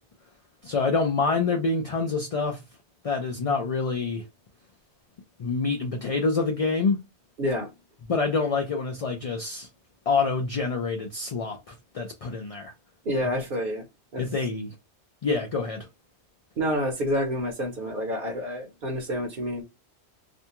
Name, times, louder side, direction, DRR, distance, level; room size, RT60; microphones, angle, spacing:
voice 1, 0.6-2.6 3.0-4.2 5.4-7.0 8.1-9.7 10.1-12.7 13.2-13.3 14.2-14.7 15.2-15.9, left 4 dB, 55° left, 0.4 m, -26 dB
voice 2, 13.1-13.8 14.1-14.2 16.6-19.6, equal, 55° right, 0.8 m, -28 dB
2.5 x 2.2 x 2.8 m
omnidirectional pair, 1.2 m